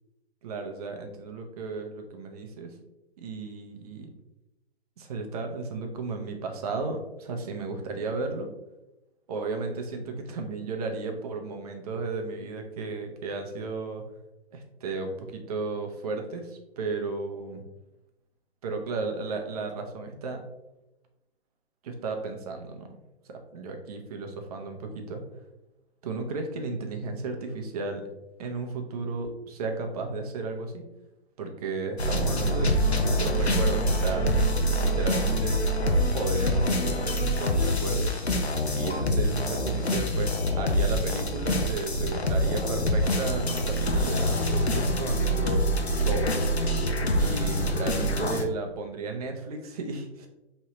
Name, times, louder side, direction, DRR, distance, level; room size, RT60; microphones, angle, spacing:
voice 1, 0.4-2.7 3.2-4.1 5.0-8.5 9.3-14.0 14.5-17.6 18.6-20.4 21.8-23.0 23.3-25.3 26.0-28.1 28.4-30.9 31.4-34.3 34.8-35.6 36.1-38.2 38.7-45.6 46.0-46.4 47.2-50.3, right 3 dB, 35° right, 3 dB, 0.8 m, -34 dB
sound 1, 32.0-48.4, equal, 90° left, 0.8 m, -25 dB
5.4 x 3.2 x 3.0 m, 0.94 s
figure-of-eight pair, 125°, 32 cm